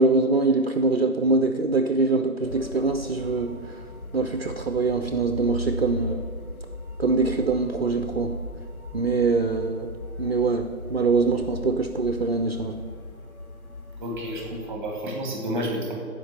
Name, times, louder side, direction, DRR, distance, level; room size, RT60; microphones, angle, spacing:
voice 1, 0.0-3.8 4.1-6.3 7.0-8.4 8.9-12.8, right 3 dB, 45° right, 7 dB, 0.6 m, -24 dB
sound 1, 2.4-14.7, left 2 dB, 85° left, 1.6 m, -37 dB
voice 2, 14.0-15.9, equal, 5° right, 0 dB, 1.8 m, -30 dB
14.5 x 5.2 x 7.0 m, 2.4 s
figure-of-eight pair, 145°, 42 cm